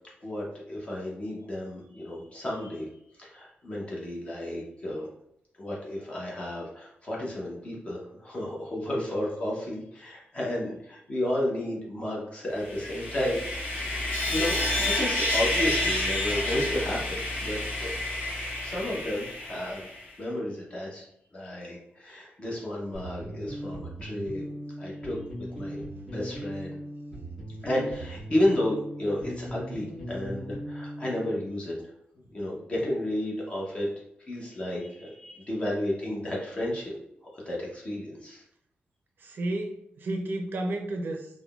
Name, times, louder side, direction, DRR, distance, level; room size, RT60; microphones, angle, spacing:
voice 1, 0.2-2.9 3.1-5.1 5.6-13.5 14.3-17.9 18.6-21.0 21.3-24.4 24.8-25.2 25.6-25.8 26.1-26.8 27.6-31.7 32.3-33.9 34.3-36.9 37.3-38.4, left 1 dB, 30° left, -4 dB, 0.7 m, -32 dB
Sawing, 12.6-20.0, left 2 dB, 50° left, 1.4 m, -29 dB
sound 1, 22.9-31.4, equal, 15° left, 1.3 m, -38 dB
voice 2, 39.2-41.3, right 1 dB, 60° right, 3 dB, 0.5 m, -32 dB
3.5 x 2.1 x 2.3 m, 0.76 s
wide cardioid pair, 150°, 4 cm